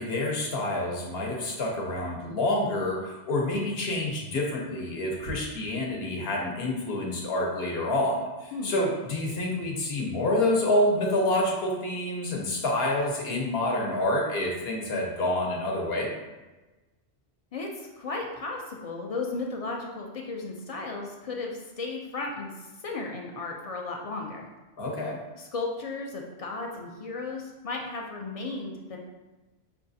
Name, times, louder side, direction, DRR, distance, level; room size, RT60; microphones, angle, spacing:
voice 1, 0.0-16.2 24.8-25.2, left 1 dB, 70° left, -1 dB, 1.0 m, -28 dB
voice 2, 17.5-24.5 25.4-29.0, left 3 dB, 55° left, 0 dB, 0.4 m, -35 dB
5.3 x 2.4 x 2.6 m, 1.1 s
omnidirectional pair, 1.1 m